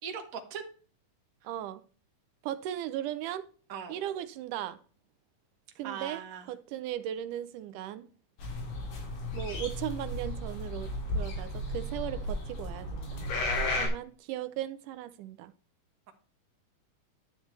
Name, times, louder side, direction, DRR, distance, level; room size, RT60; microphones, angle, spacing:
voice 1, 0.0-0.7 3.7-4.0 5.8-6.5 13.6-13.9, right 7 dB, 40° right, 1.2 m, -40 dB
voice 2, 1.4-1.8 2.4-3.5 3.9-4.8 5.8-6.2 6.5-8.1 9.3-13.3 13.7-15.5, right 12 dB, 80° right, 2.1 m, -37 dB
sound 1, 8.4-13.9, left 1 dB, 90° left, 4.4 m, -34 dB
11.0 x 9.2 x 3.3 m
omnidirectional pair, 3.8 m